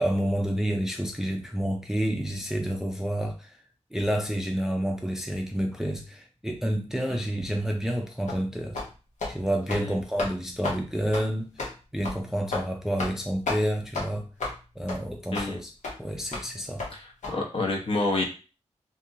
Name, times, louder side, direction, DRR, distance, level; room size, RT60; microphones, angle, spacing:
voice 1, 0.0-3.6 3.9-8.8 9.3-11.5 11.9-14.3 14.8-15.7 16.0-16.9, equal, 5° right, 0.4 m, -29 dB
sound 1, 8.3-8.4 8.7-8.9 9.2-9.3 9.6-9.9 10.2-10.3 10.6-10.8 11.1-11.3 11.6-11.7 12.0-12.2 12.5-12.7 13.0-13.2 13.5-13.6 13.9-14.1 14.4-14.6 14.9-15.0 15.3-15.5 15.8-15.9 16.3-16.5 16.8-16.9 17.2-17.3, left 3 dB, 80° left, 0.9 m, -32 dB
voice 2, 15.3-15.6 16.9-18.2, left 2 dB, 50° left, 0.8 m, -28 dB
2.6 x 2.6 x 2.6 m
wide cardioid pair, 115°, 12 cm